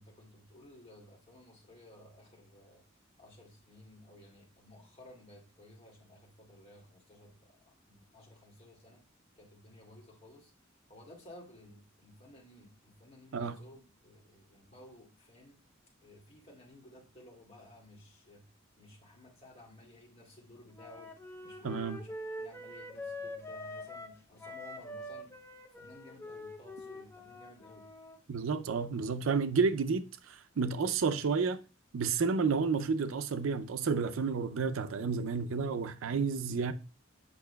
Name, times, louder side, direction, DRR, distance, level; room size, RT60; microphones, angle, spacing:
voice 1, 0.0-2.8 3.2-9.0 9.4-10.5 10.9-15.6 16.0-18.5 18.8-25.4 25.7-27.9, left 1 dB, 30° left, 2.1 m, -56 dB
Wind instrument woodwind instrument, 20.7-28.2, left 1 dB, 15° left, 0.6 m, -44 dB
voice 2, 21.6-22.0 28.3-31.6 31.9-36.7, right 5 dB, 75° right, 0.5 m, -31 dB
8.5 x 5.8 x 2.2 m
head